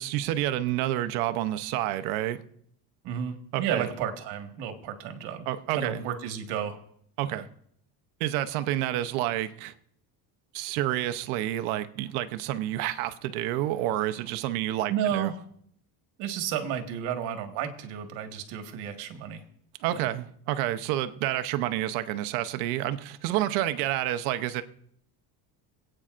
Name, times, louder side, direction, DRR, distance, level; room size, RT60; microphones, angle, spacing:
voice 1, 0.0-2.4 3.5-3.9 5.5-6.0 7.2-7.5 8.2-9.7 10.5-15.3 19.8-24.6, right 13 dB, 85° right, 0.8 m, -29 dB
voice 2, 3.0-6.8 7.2-7.4 14.9-15.4 16.2-19.4 19.9-20.1, right 9 dB, 65° right, 1.7 m, -32 dB
26.0 x 8.8 x 2.5 m
cardioid pair, 145°, 43 cm